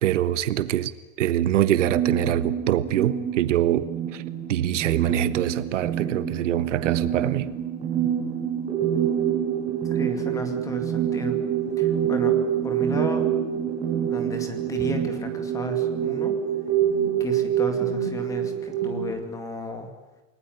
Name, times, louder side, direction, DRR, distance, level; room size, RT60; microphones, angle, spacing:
voice 1, 0.0-0.9 1.2-4.2 4.5-7.5, right 12 dB, 70° right, 1.4 m, -24 dB
sound 1, 1.7-19.0, right 9 dB, 15° right, 7.0 m, -26 dB
voice 2, 9.9-11.4 11.8-13.2 14.1-16.4 17.2-19.9, equal, 10° left, 2.2 m, -33 dB
29.0 x 20.0 x 9.4 m
supercardioid pair, 180°, 38 cm